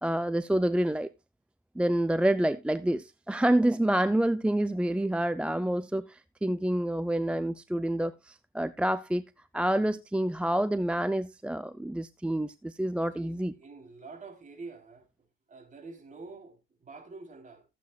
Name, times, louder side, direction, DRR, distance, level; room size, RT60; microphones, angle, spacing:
voice 1, 0.0-1.1 1.8-9.2 9.5-13.5, right 1 dB, 5° right, 0.4 m, -28 dB
voice 2, 13.2-15.1 15.5-17.7, right 3 dB, 40° right, 3.4 m, -47 dB
15.5 x 8.5 x 2.3 m
cardioid pair, 90°, 20 cm